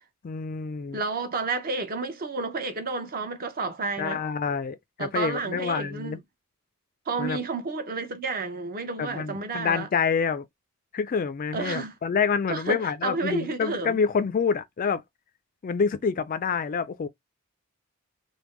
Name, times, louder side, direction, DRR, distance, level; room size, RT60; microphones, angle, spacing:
voice 1, 0.2-1.0 4.0-6.2 7.2-7.4 9.0-10.5 10.9-15.0 15.6-17.1, left 6 dB, 40° left, 0.3 m, -27 dB
voice 2, 0.9-4.2 5.0-6.2 7.1-9.9 11.5-11.9 12.5-14.0, right 4 dB, 40° right, 0.7 m, -31 dB
3.4 x 2.1 x 3.1 m
head